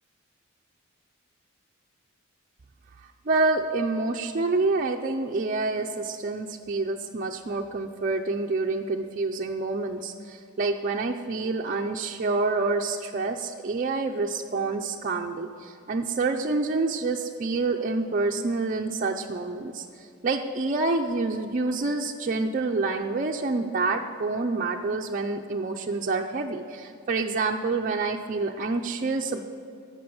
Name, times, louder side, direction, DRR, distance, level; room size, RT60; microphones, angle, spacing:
voice 1, 3.3-29.4, right 3 dB, 40° right, 1 dB, 0.5 m, -27 dB
15.5 x 6.1 x 7.0 m, 2.5 s
head